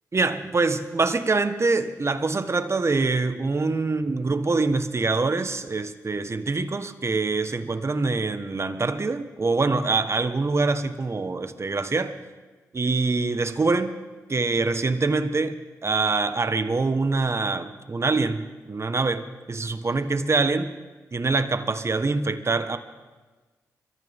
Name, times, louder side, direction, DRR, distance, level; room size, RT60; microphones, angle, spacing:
voice 1, 0.1-12.1 12.7-14.0 14.3-20.7 21.1-22.8, right 3 dB, 40° right, 10 dB, 1.3 m, -24 dB
25.0 x 14.5 x 3.7 m, 1.3 s
supercardioid pair, 45°, 7 cm